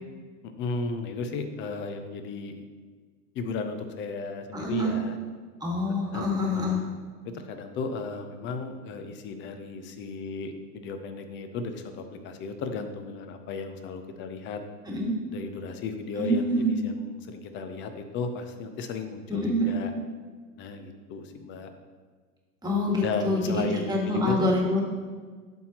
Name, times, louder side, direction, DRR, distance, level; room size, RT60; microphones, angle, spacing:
voice 1, 0.6-2.7 3.3-5.1 6.1-6.9 7.3-14.6 15.3-19.9 20.6-21.7 23.0-24.5, left 4 dB, 25° left, 7 dB, 0.5 m, -35 dB
voice 2, 4.5-4.9 5.6-6.8 14.8-15.1 16.2-16.8 19.3-19.8 22.6-24.8, left 1 dB, 10° right, -2 dB, 1.5 m, -26 dB
11.5 x 4.3 x 2.9 m, 1.5 s
hypercardioid pair, 110°, 49 cm